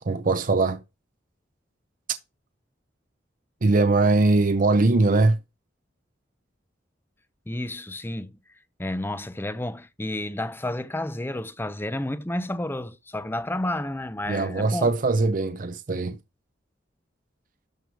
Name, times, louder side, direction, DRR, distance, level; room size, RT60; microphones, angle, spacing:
voice 1, 0.0-0.8 3.6-5.4 14.3-16.2, right 3 dB, 50° right, 0.6 m, -21 dB
voice 2, 7.5-8.4 8.8-14.9, left 1 dB, 10° left, 0.6 m, -31 dB
12.0 x 4.8 x 4.7 m
head